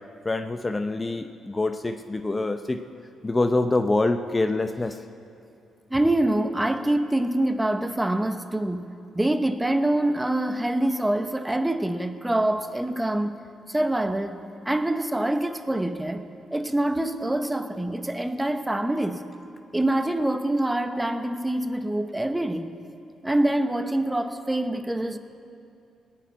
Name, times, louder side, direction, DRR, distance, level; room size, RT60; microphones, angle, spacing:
voice 1, 0.2-2.8 3.2-5.0, left 2 dB, 20° left, 8 dB, 0.6 m, -25 dB
voice 2, 5.9-8.9 9.1-13.3 13.7-16.2 16.5-19.2 19.7-22.7 23.2-25.2, right 1 dB, 10° right, 9 dB, 0.8 m, -25 dB
18.0 x 7.4 x 9.3 m, 2.5 s
cardioid pair, 80°, 0 cm